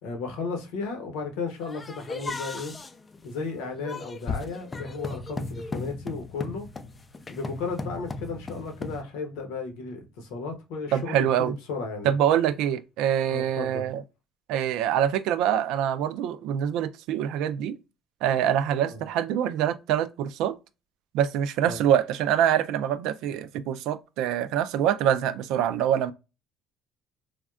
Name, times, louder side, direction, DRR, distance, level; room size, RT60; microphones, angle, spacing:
voice 1, 0.0-2.7 3.2-6.7 7.3-12.1 13.3-13.9 18.8-19.0 21.6-21.9, left 4 dB, 85° left, 0.9 m, -34 dB
sound 1, 1.6-9.0, left 3 dB, 30° left, 0.4 m, -36 dB
voice 2, 10.9-11.5 12.0-14.0 14.5-17.7 18.2-20.6 21.1-26.1, right 10 dB, 75° right, 0.3 m, -25 dB
3.4 x 2.2 x 2.3 m
supercardioid pair, 75°, 0 cm